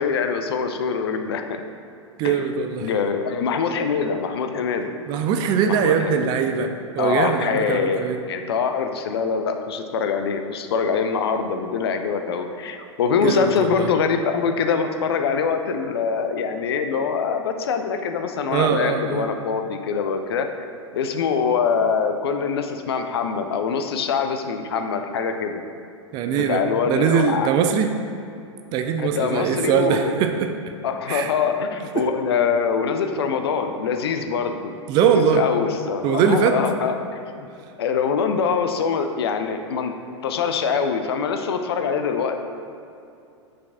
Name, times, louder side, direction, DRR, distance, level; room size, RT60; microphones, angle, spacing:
voice 1, 0.0-1.6 2.2-2.4 2.8-4.9 5.7-6.3 7.0-20.5 20.9-25.6 26.3-27.5 29.0-30.0 30.8-37.5 37.8-39.9 40.2-42.4, left 6 dB, 55° left, 6 dB, 0.5 m, -24 dB
voice 2, 2.2-2.9 5.1-8.2 13.2-13.9 18.5-19.3 26.1-27.9 28.7-30.5 31.1-31.3 32.0-32.1 34.9-35.4 36.0-36.6, right 7 dB, 30° right, 6 dB, 0.4 m, -21 dB
6.0 x 4.7 x 3.4 m, 2.6 s
figure-of-eight pair, 95°, 16 cm